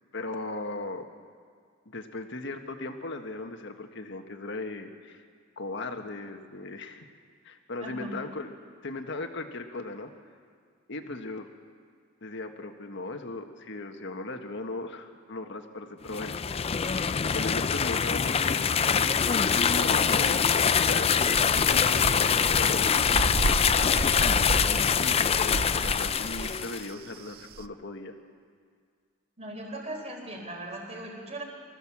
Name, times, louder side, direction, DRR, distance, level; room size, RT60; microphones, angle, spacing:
voice 1, 0.1-1.1 1.8-5.2 5.6-7.1 7.4-8.5 8.8-10.1 10.9-11.5 12.2-16.3 17.3-19.1 19.5-23.3 24.7-28.1, left 2 dB, 65° left, 6 dB, 1.5 m, -37 dB
voice 2, 7.8-8.2 29.4-31.4, right 1 dB, 35° right, 1 dB, 4.0 m, -39 dB
sound 1, 16.1-26.9, left 7 dB, 30° left, 0.4 m, -24 dB
sound 2, 19.2-27.7, right 3 dB, 50° right, 0.6 m, -34 dB
24.5 x 14.5 x 7.3 m, 2.1 s
head